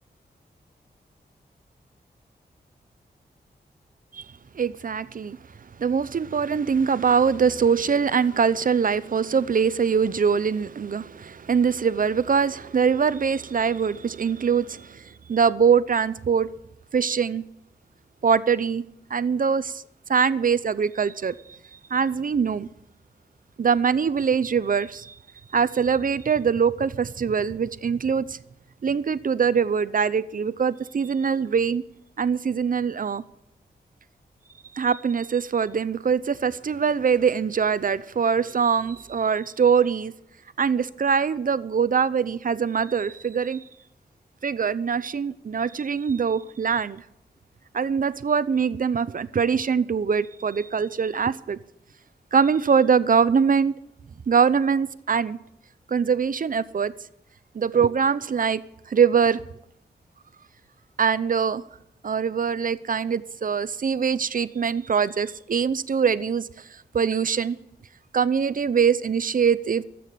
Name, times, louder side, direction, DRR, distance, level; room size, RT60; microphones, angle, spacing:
voice 1, 4.5-5.4 5.8-16.5 16.9-17.4 18.2-18.8 19.1-19.8 20.1-22.7 23.6-25.2 25.5-28.4 28.8-31.8 32.2-33.2 34.7-40.1 40.6-43.6 44.4-47.0 47.7-51.6 52.3-53.8 54.3-55.4 55.9-56.9 57.5-58.6 58.9-59.4 61.0-61.6 62.0-66.6 66.9-67.6 68.1-69.8, right 6 dB, 50° right, 0.7 m, -23 dB
13.5 x 8.6 x 9.1 m
wide cardioid pair, 80°, 18 cm